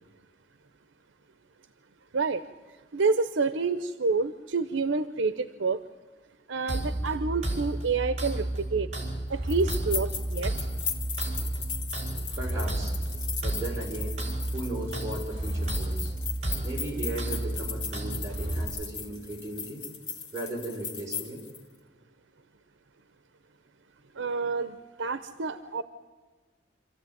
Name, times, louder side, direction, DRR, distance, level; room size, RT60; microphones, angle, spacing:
voice 1, 2.9-5.8 6.5-8.9 9.3-10.5 24.1-25.8, right 4 dB, 85° right, 12 dB, 0.8 m, -28 dB
sound 1, 6.7-18.6, right 1 dB, 35° right, 5.2 m, -32 dB
sound 2, 9.5-21.6, left 6 dB, 80° left, 2.1 m, -38 dB
voice 2, 12.4-14.2 14.5-16.1 16.6-19.8 20.3-21.4, right 1 dB, 15° right, -3 dB, 4.9 m, -37 dB
27.0 x 14.5 x 9.3 m, 1.4 s
head